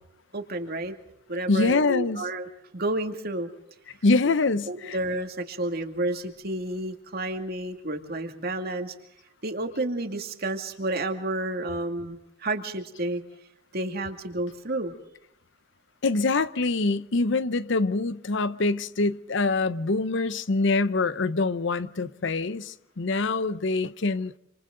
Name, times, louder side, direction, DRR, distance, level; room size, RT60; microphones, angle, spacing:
voice 1, 0.3-0.9 1.3-2.5 2.7-3.5 4.7-8.9 9.4-13.2 13.7-14.9, right 1 dB, 50° right, 2.3 m, -30 dB
voice 2, 1.5-2.2 4.0-5.0 16.0-24.4, left 3 dB, 65° left, 0.8 m, -25 dB
27.5 x 26.5 x 3.9 m
head